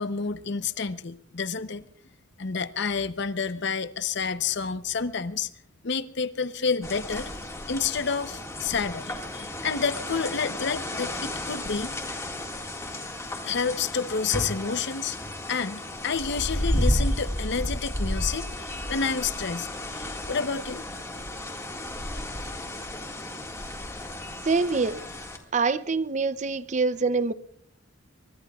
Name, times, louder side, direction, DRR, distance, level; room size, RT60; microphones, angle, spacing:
voice 1, 0.0-1.8 2.4-5.5 5.8-7.3 7.7-11.9 13.4-15.2 15.5-19.7 19.9-20.8, left 5 dB, 55° left, 0.7 m, -29 dB
sound 1, 6.8-25.4, left 1 dB, 15° left, 1.8 m, -33 dB
voice 2, 24.4-25.0 25.5-27.3, right 4 dB, 35° right, 0.5 m, -25 dB
24.0 x 22.0 x 2.4 m
head